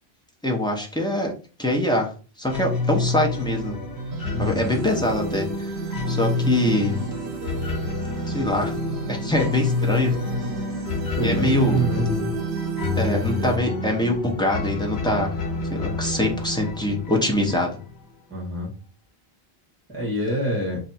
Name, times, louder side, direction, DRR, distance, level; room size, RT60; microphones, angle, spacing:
voice 1, 0.4-1.3 1.6-2.1 2.4-3.8 4.4-5.7 6.1-7.0 8.3-8.8 9.1-10.1 11.2-11.8 12.9-15.3 15.7-17.7, left 1 dB, 5° left, -1 dB, 0.7 m, -24 dB
sound 1, 2.5-18.0, left 3 dB, 80° left, 1.1 m, -29 dB
sound 2, 4.0-13.6, right 5 dB, 85° right, 0.8 m, -31 dB
voice 2, 4.3-4.7 11.1-12.3 18.3-18.7 19.9-20.8, right 1 dB, 10° right, -5 dB, 1.8 m, -25 dB
3.3 x 2.5 x 4.2 m, 0.37 s
omnidirectional pair, 1.0 m